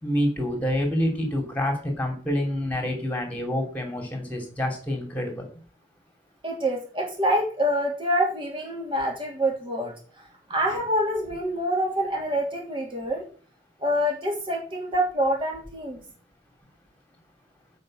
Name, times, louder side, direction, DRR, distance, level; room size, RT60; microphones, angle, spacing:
voice 1, 0.0-5.5, left 1 dB, 10° left, 3 dB, 2.7 m, -27 dB
voice 2, 6.4-9.9 10.5-13.2 13.8-16.0, equal, 30° right, 0 dB, 2.9 m, -26 dB
7.8 x 5.3 x 7.5 m, 0.41 s
head